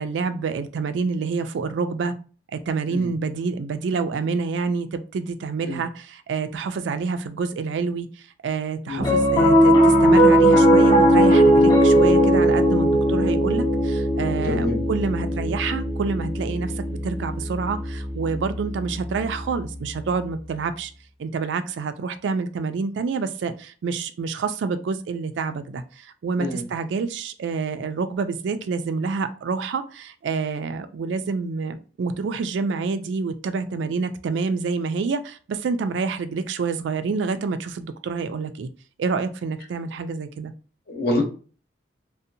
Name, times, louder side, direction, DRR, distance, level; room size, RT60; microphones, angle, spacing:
voice 1, 0.0-2.1 2.5-8.1 8.4-20.9 21.2-38.7 39.0-40.5, right 4 dB, 80° right, 10 dB, 0.3 m, -27 dB
Piano, 9.0-19.5, equal, 20° left, 0.5 m, -18 dB
voice 2, 14.4-14.8 26.4-26.6 40.9-41.2, left 2 dB, 55° left, 1 dB, 0.8 m, -26 dB
2.6 x 2.1 x 2.6 m, 0.37 s
head